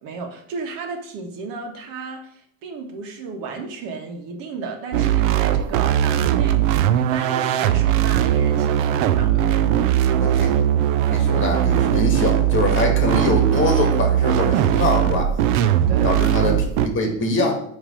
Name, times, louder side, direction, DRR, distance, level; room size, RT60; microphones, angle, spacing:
voice 1, 0.0-9.5 15.9-16.4, right 4 dB, 65° right, 3 dB, 1.5 m, -34 dB
sound 1, 4.9-16.9, right 11 dB, 90° right, 0.7 m, -19 dB
voice 2, 10.2-10.5 11.1-15.3 16.0-17.5, left 2 dB, 30° left, 3 dB, 1.9 m, -23 dB
9.0 x 3.3 x 4.9 m, 0.69 s
supercardioid pair, 115°, 38 cm